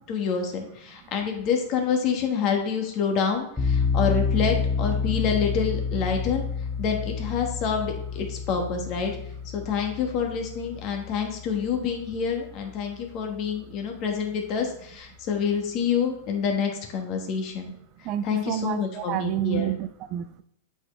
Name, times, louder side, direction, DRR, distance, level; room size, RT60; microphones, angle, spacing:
voice 1, 0.1-6.4 6.8-9.2 9.5-17.7 18.2-19.7, left 6 dB, 45° left, 3 dB, 1.4 m, -27 dB
sound 1, 3.6-12.4, left 5 dB, 5° left, 1.2 m, -29 dB
voice 2, 18.0-20.4, right 13 dB, 45° right, 13 dB, 0.4 m, -30 dB
7.7 x 4.5 x 3.2 m, 0.75 s
hypercardioid pair, 130°, 0 cm